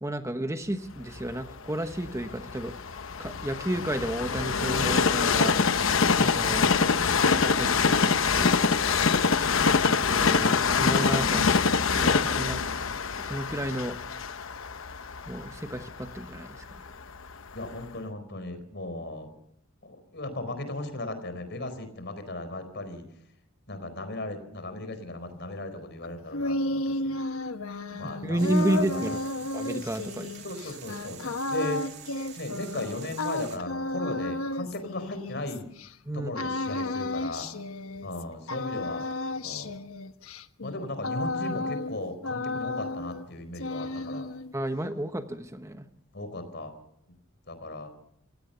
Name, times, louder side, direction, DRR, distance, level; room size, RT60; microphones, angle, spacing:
voice 1, 0.0-2.7 3.2-5.6 6.1-6.7 7.4-8.6 10.0-11.5 12.0-12.6 13.2-14.0 15.3-16.9 27.9-29.2 29.5-30.3 36.1-36.3 44.5-45.9, right 1 dB, 15° right, 8 dB, 1.1 m, -32 dB
Train, 1.2-17.1 17.7-17.8, left 5 dB, 70° left, 1.0 m, -25 dB
voice 2, 6.5-6.8 17.5-19.3 19.8-23.0 23.7-27.2 28.0-29.2 30.4-32.0 32.4-35.7 36.1-37.5 38.0-39.1 39.4-39.8 40.6-44.3 46.1-46.8 47.5-47.9, left 2 dB, 55° left, 10 dB, 4.4 m, -36 dB
sound 1, 26.0-35.9 36.3-38.2 38.5-42.0 42.2-43.3 43.5-44.5, left 2 dB, 85° left, 1.2 m, -33 dB
sound 2, 28.4-33.6, right 9 dB, 50° right, 3.0 m, -47 dB
28.0 x 16.5 x 6.9 m, 0.74 s
head